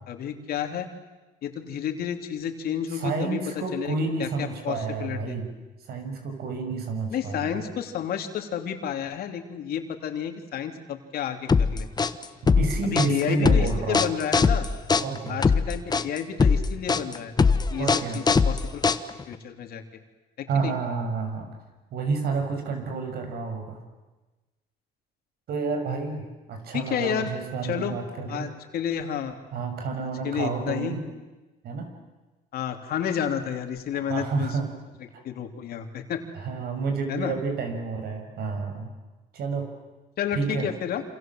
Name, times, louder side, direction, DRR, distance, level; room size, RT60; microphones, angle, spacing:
voice 1, 0.1-0.9 1.4-3.4 3.7-3.9 4.2-5.4 7.1-11.9 12.8-14.7 15.3-17.3 17.7-17.9 18.1-18.8 19.3-19.8 20.4-20.7 26.7-27.3 27.6-28.0 28.3-29.4 30.0-31.0 32.5-34.6 35.2-36.2 37.1-37.3 40.2-41.0, left 9 dB, 65° left, 6 dB, 3.2 m, -31 dB
voice 2, 2.9-5.5 5.8-7.6 12.6-14.1 15.0-15.5 17.7-18.2 20.5-21.5 21.9-23.8 25.5-28.5 29.5-31.0 31.6-31.9 33.9-34.7 35.1-35.2 36.3-38.9 39.3-39.7 40.3-40.7, right 4 dB, 70° right, 5 dB, 6.7 m, -30 dB
sound 1, 11.5-19.3, left 5 dB, 25° left, 1.2 m, -21 dB
28.0 x 27.0 x 7.8 m, 1.2 s
cardioid pair, 110°, 17 cm